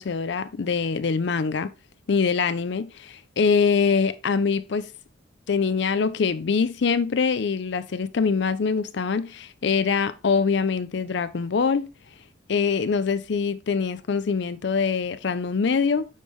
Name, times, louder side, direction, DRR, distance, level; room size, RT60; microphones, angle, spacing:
voice 1, 0.0-1.7 2.1-4.9 5.5-11.9 12.5-16.1, left 5 dB, 60° left, 0.5 m, -24 dB
9.4 x 3.3 x 3.5 m
head